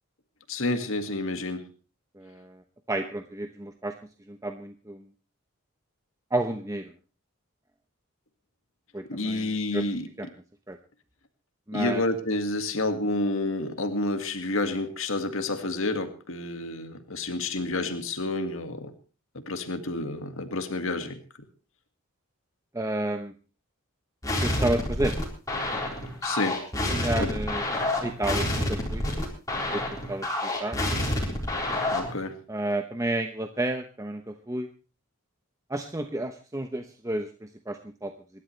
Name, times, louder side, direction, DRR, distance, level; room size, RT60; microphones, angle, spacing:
voice 1, 0.5-1.6 9.1-10.1 11.7-18.9 19.5-21.2 26.2-26.6 27.2-27.3 31.9-32.4, left 2 dB, 70° left, 7 dB, 1.9 m, -29 dB
voice 2, 2.2-2.6 2.9-3.9 4.3-5.0 6.3-6.9 8.9-9.8 10.2-10.3 10.7-10.8 11.7-12.0 22.7-23.3 24.4-25.1 26.9-27.6 28.0-29.0 29.5-30.3 30.6-30.8 32.5-34.7 35.7-38.1, right 1 dB, 15° right, 6 dB, 0.9 m, -31 dB
sound 1, 24.2-32.2, left 1 dB, 15° left, 4.2 m, -28 dB
27.0 x 12.0 x 3.3 m, 0.35 s
head